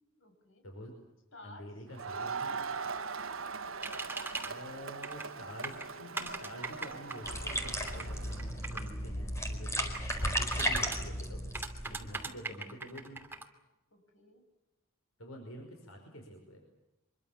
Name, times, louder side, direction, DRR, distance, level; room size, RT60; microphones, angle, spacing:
voice 1, 0.1-0.6 1.3-1.7 12.0-12.5 13.1-13.5 13.9-14.4 15.7-16.3, left 1 dB, 70° left, 4 dB, 6.8 m, -57 dB
voice 2, 1.4-2.6 4.4-11.4 11.9-13.3 15.2-16.6, equal, 85° left, 3 dB, 5.2 m, -47 dB
Crowd, 1.9-8.5, right 5 dB, 70° right, 1.4 m, -41 dB
sound 1, 3.8-4.5 5.0-5.3 5.6-8.9 9.9-11.0 11.5-13.5, right 3 dB, 10° right, 2.8 m, -40 dB
sound 2, 7.2-12.2, equal, 15° left, 4.6 m, -35 dB
25.5 x 23.5 x 7.3 m, 0.99 s
head